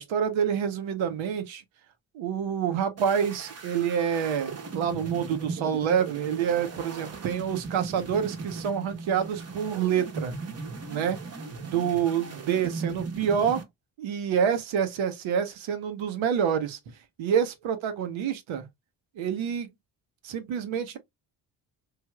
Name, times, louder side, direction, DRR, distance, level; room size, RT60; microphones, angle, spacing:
voice 1, 0.0-1.6 2.1-10.3 10.9-11.2 11.6-13.6 14.0-16.8 17.2-18.7 19.2-19.7 20.2-21.0, right 8 dB, 70° right, 0.8 m, -27 dB
sound 1, 3.0-13.6, right 4 dB, 30° right, 1.0 m, -38 dB
3.2 x 2.7 x 2.2 m
hypercardioid pair, 45°, 49 cm